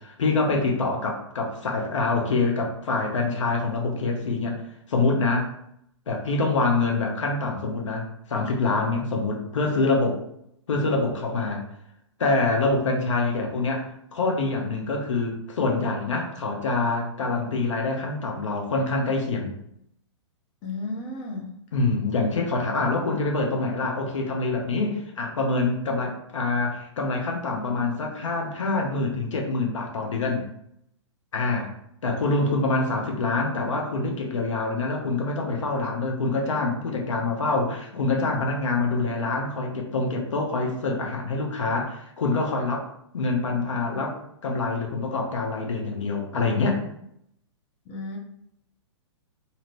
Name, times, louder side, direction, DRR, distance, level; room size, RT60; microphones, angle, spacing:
voice 1, 0.0-4.6 4.9-5.5 6.1-10.2 10.7-11.6 12.2-19.5 21.7-30.4 31.3-31.7 32.0-42.9 43.1-46.8, left 3 dB, 75° left, 1 dB, 0.7 m, -25 dB
voice 2, 20.6-21.6 24.7-25.0 47.9-48.2, left 2 dB, 30° left, 0 dB, 0.6 m, -34 dB
2.8 x 2.5 x 3.0 m, 0.74 s
hypercardioid pair, 125°, 16 cm